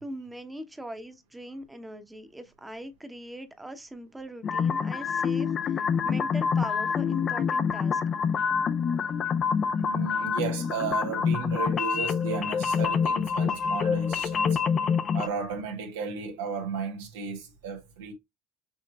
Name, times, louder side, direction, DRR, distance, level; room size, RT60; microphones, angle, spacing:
voice 1, 0.0-8.0, right 1 dB, 10° right, 1.0 m, -41 dB
sound 1, 4.4-15.3, left 6 dB, 45° left, 0.5 m, -26 dB
voice 2, 9.7-14.6 15.1-18.1, right 6 dB, 85° right, 1.3 m, -34 dB
6.0 x 3.1 x 2.3 m
hypercardioid pair, 75°, 0 cm